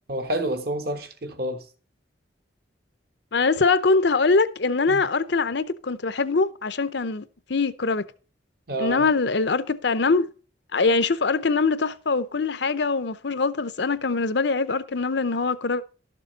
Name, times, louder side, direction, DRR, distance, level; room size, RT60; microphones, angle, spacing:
voice 1, 0.1-1.7 4.9-5.0 8.7-9.1, right 1 dB, 50° right, 1.3 m, -29 dB
voice 2, 3.3-7.2 7.5-8.0 8.8-10.3 10.7-15.8, left 4 dB, 65° left, 0.7 m, -23 dB
12.5 x 6.9 x 4.1 m
head